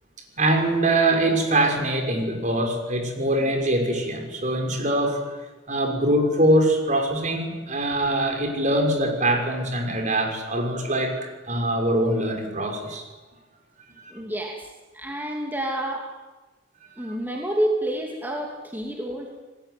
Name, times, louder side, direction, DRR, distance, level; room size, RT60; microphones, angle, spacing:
voice 1, 0.4-5.4 5.7-13.1 14.0-14.1 17.0-17.2, right 1 dB, 45° right, 4 dB, 5.7 m, -23 dB
voice 2, 14.1-14.7 14.9-16.1 17.0-19.4, right 1 dB, 10° right, 0 dB, 2.8 m, -28 dB
29.0 x 20.0 x 9.4 m, 1.2 s
head